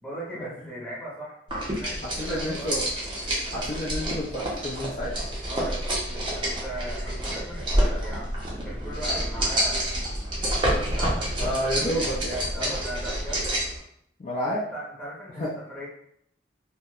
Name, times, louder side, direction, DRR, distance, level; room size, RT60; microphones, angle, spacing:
voice 1, 0.0-2.7 5.5-8.4 8.6-9.9 10.6-11.4 12.5-13.5 14.5-15.9, right 1 dB, 10° left, -8 dB, 0.9 m, -38 dB
sound 1, 1.5-13.8, right 1 dB, 25° right, 0.5 m, -29 dB
voice 2, 2.2-2.9 3.5-5.3 11.4-12.8 14.2-14.6 15.4-15.5, equal, 40° left, -6 dB, 0.4 m, -30 dB
sound 2, 4.9-13.6, equal, 75° right, 0.7 m, -36 dB
2.7 x 2.0 x 2.3 m, 0.70 s
head